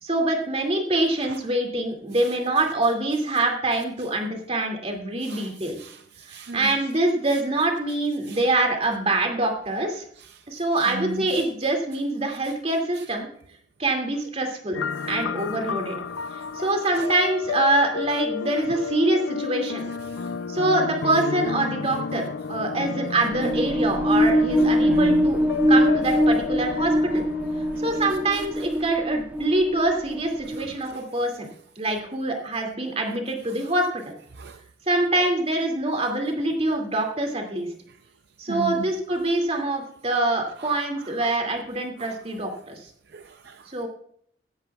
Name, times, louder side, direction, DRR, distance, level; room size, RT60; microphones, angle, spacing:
voice 1, 0.0-5.8 6.3-10.0 10.5-13.3 13.8-14.8 15.1-15.9 16.5-19.8 20.5-25.4 25.7-27.2 27.8-31.5 31.8-34.0 34.9-37.7 38.4-42.8 43.7-43.9, right 2 dB, 35° right, 2.4 m, -25 dB
voice 2, 5.2-6.8 7.3-7.4 8.3-8.4 10.2-10.4 10.8-11.5 13.0-13.1 15.0-15.1 17.0-17.1 18.7-18.8 20.1-20.3 24.8-25.3 28.3-28.5 30.5-31.0 34.3-34.6 37.9-38.0 38.5-38.8 40.6-41.1 42.0-42.2 43.1-43.7, right 3 dB, 60° right, 0.6 m, -37 dB
sound 1, 14.7-28.3, left 5 dB, 80° left, 0.5 m, -31 dB
sound 2, 23.3-30.9, equal, 10° right, 0.3 m, -23 dB
16.0 x 13.0 x 2.4 m
head